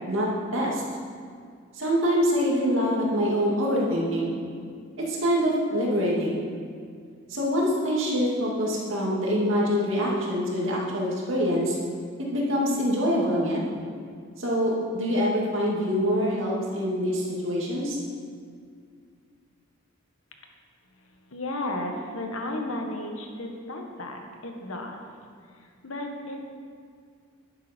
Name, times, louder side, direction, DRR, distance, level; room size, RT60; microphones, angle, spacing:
voice 1, 0.1-0.8 1.8-4.4 5.0-6.4 7.3-11.8 12.3-13.7 14.4-18.0, equal, 65° right, -3 dB, 2.4 m, -25 dB
voice 2, 21.3-25.0 25.8-26.4, left 1 dB, 75° left, 3 dB, 1.5 m, -33 dB
11.0 x 9.5 x 4.5 m, 2.2 s
head